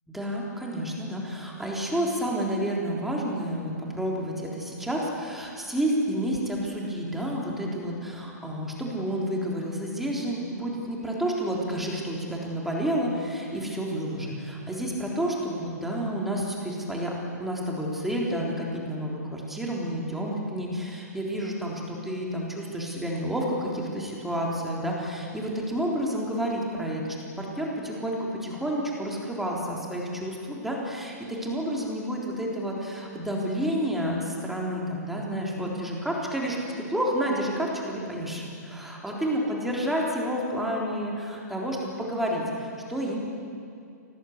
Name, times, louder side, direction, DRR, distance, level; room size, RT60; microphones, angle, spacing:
voice 1, 0.1-17.1 17.4-27.0 27.4-43.2, equal, ahead, -3 dB, 3.7 m, -30 dB
25.0 x 19.0 x 8.1 m, 2.5 s
hypercardioid pair, 150°, 9 cm